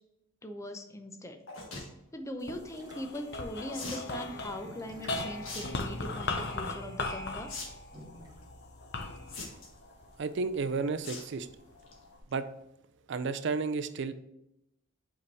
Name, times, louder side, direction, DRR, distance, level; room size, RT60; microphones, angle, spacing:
voice 1, 0.4-1.4 2.1-7.5, left 1 dB, 15° left, 6 dB, 0.6 m, -40 dB
sound 1, 1.5-1.9 3.7-4.1 5.4-5.7 6.0-6.4 7.5-7.6 7.9-8.0 9.3-9.8 11.0-11.3 11.7-11.9 12.3-12.4 12.6-12.7, left 3 dB, 75° left, 1.5 m, -41 dB
sound 2, 2.1-9.3, equal, 20° right, 1.0 m, -54 dB
sound 3, 2.4-10.9 11.5-12.2, left 2 dB, 55° left, 0.7 m, -38 dB
voice 2, 10.2-11.5 12.3-12.5 13.1-14.1, right 4 dB, 60° right, 12 dB, 0.4 m, -32 dB
5.5 x 4.6 x 4.1 m, 0.85 s
head